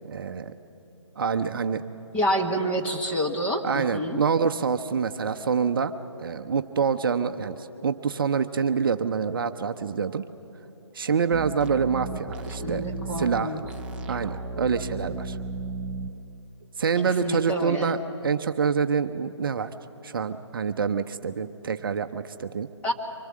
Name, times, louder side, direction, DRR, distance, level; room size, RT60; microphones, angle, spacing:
voice 1, 0.0-0.5 1.2-1.8 3.6-5.9 6.2-10.3 10.9-12.8 13.2-13.5 14.1-15.4 16.8-19.7 20.0-22.7, right 6 dB, 45° right, 8 dB, 0.7 m, -26 dB
voice 2, 2.1-4.2 12.6-13.6 17.2-17.9 22.8-22.9, equal, 10° left, 0 dB, 1.2 m, -27 dB
sound 1, 11.3-16.1, right 3 dB, 5° right, 0.6 m, -34 dB
25.0 x 21.5 x 7.4 m, 3.0 s
figure-of-eight pair, 150°, 16 cm